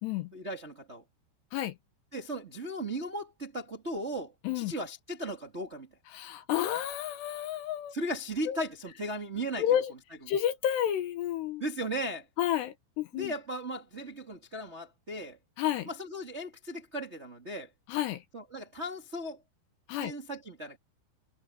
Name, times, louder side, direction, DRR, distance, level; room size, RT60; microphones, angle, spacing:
voice 1, 0.3-1.0 2.1-5.9 7.9-9.6 11.6-12.2 13.2-15.4 15.8-17.7 18.3-19.4 19.9-20.8, right 1 dB, 65° right, 0.6 m, -37 dB
voice 2, 6.1-7.9 8.5-8.6 9.6-9.9 10.3-11.6 12.4-13.3 15.6-15.9 17.9-18.2 19.9-20.1, left 11 dB, 70° left, 3.0 m, -30 dB
omnidirectional pair, 5.5 m